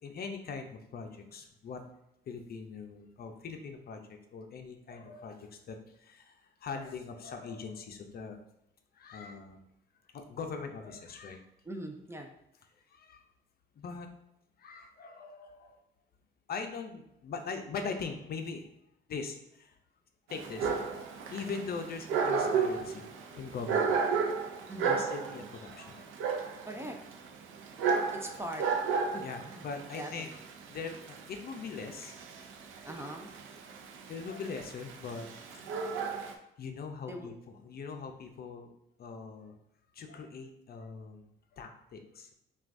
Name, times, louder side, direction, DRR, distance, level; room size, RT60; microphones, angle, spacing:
voice 1, 0.0-1.8 2.3-8.4 8.9-9.6 10.1-11.4 12.9-13.3 13.8-14.1 14.6-15.8 16.5-18.7 19.1-19.8 20.3-20.7 21.3-24.0 24.8-26.1 29.1-30.3 30.7-32.1 34.1-35.3 36.6-38.7 39.0-39.5 39.9-42.3, left 5 dB, 50° left, 5 dB, 0.5 m, -41 dB
voice 2, 11.7-12.3 24.7-25.0 26.7-27.0 28.1-29.7 30.0-30.3 32.8-33.3 37.1-37.3, right 1 dB, 15° right, 4 dB, 0.5 m, -42 dB
Dog, 20.3-36.3, right 5 dB, 85° right, 0.5 m, -33 dB
5.8 x 2.3 x 2.5 m, 0.79 s
cardioid pair, 90°, 20 cm